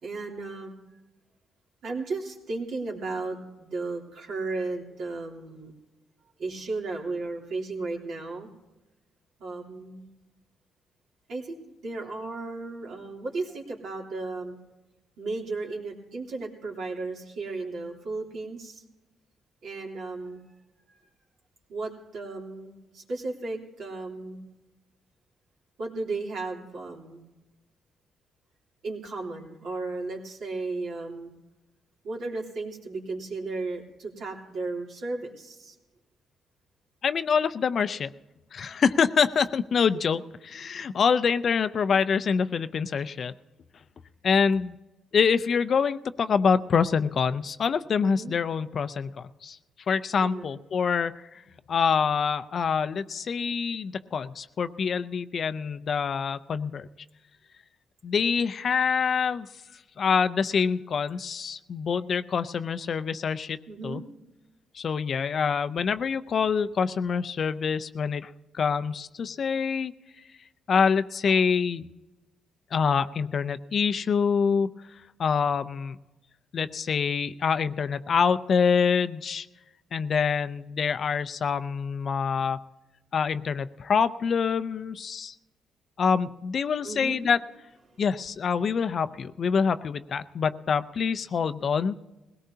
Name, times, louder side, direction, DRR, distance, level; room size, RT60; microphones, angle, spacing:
voice 1, 0.0-0.7 1.8-5.7 6.4-8.5 9.4-10.1 11.3-14.6 15.2-18.8 19.6-20.4 20.9-21.0 21.7-24.5 25.8-27.2 28.8-31.3 32.0-35.7 48.0-48.3 50.2-50.5 63.7-64.0 86.8-87.2, right 3 dB, 70° right, -1 dB, 3.1 m, -35 dB
voice 2, 37.0-38.1 38.5-43.3 44.2-44.8 45.1-49.6 49.9-51.4 51.7-56.9 58.0-59.5 60.0-63.6 63.8-64.0 64.7-69.9 70.7-71.8 72.7-74.7 75.2-76.0 76.5-79.5 79.9-82.6 83.1-85.3 86.0-87.4 88.0-92.0, left 6 dB, 50° left, 13 dB, 0.5 m, -26 dB
20.5 x 17.5 x 2.8 m, 1.1 s
cardioid pair, 90°, 0 cm